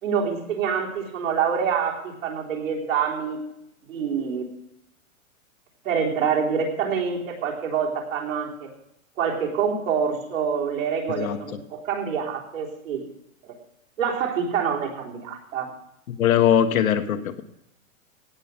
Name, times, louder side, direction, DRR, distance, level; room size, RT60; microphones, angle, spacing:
voice 1, 0.0-3.4 3.9-4.4 5.8-8.7 9.2-13.0 14.0-15.7, right 6 dB, 65° right, 0 dB, 3.8 m, -26 dB
voice 2, 16.1-17.4, left 9 dB, 75° left, 8 dB, 1.5 m, -21 dB
17.0 x 7.2 x 5.9 m, 0.80 s
hypercardioid pair, 175°, 42 cm